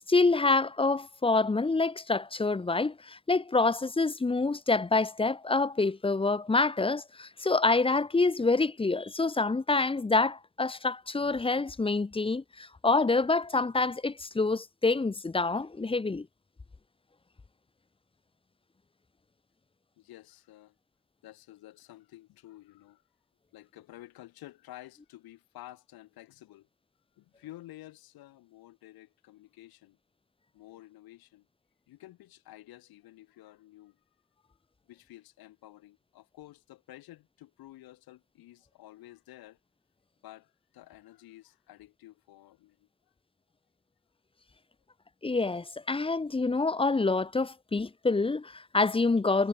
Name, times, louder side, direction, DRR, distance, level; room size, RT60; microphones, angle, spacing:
voice 1, 0.1-16.3 45.2-49.5, left 3 dB, 15° left, 0.7 m, -27 dB
voice 2, 20.0-20.8 21.2-23.0 23.5-26.7 27.2-30.0 30.5-31.5 31.9-34.0 34.4-34.6 34.9-39.6 40.2-42.9, left 15 dB, 70° left, 4.8 m, -51 dB
hypercardioid pair, 45°, 38 cm